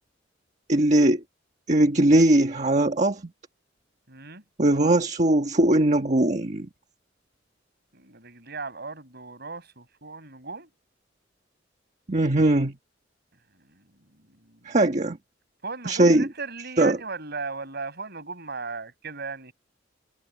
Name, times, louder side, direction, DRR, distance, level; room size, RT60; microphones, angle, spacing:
voice 1, 0.7-1.2 1.7-3.2 4.6-6.7 12.1-12.7 14.6-15.2 15.9-16.3 16.8-17.0, right 1 dB, 40° right, 1.4 m, -20 dB
voice 2, 4.1-4.4 7.9-10.7 13.7-13.8 14.4-14.8 15.6-19.5, right 4 dB, 60° right, 8.0 m, -37 dB
head